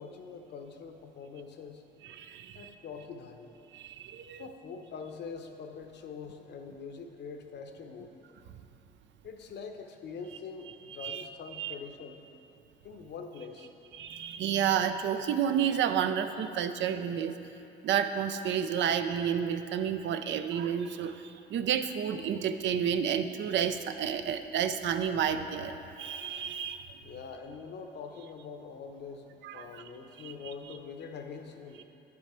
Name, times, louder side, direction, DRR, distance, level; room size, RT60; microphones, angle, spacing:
voice 1, 0.0-1.8 2.5-3.5 4.4-8.1 9.2-12.2 12.8-13.7 27.0-31.8, left 5 dB, 60° left, 5 dB, 0.8 m, -44 dB
voice 2, 2.0-2.7 3.7-4.5 11.0-11.3 11.5-11.7 13.9-17.3 17.8-26.9 29.4-29.8 30.2-30.3, right 8 dB, 70° right, 9 dB, 0.5 m, -31 dB
9.4 x 6.2 x 4.4 m, 2.9 s
cardioid pair, 90°, 20 cm